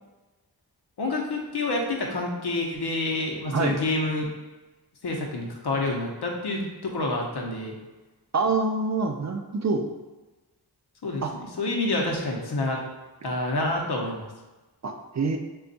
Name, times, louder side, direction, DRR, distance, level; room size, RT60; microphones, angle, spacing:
voice 1, 1.0-4.3 5.0-7.7 11.0-12.8 13.2-14.3, left 2 dB, 75° left, 0 dB, 0.8 m, -28 dB
voice 2, 8.3-9.9 11.2-11.3 14.8-15.4, right 3 dB, 45° right, 4 dB, 0.4 m, -26 dB
3.4 x 2.3 x 3.9 m, 1.2 s
wide cardioid pair, 75°, 40 cm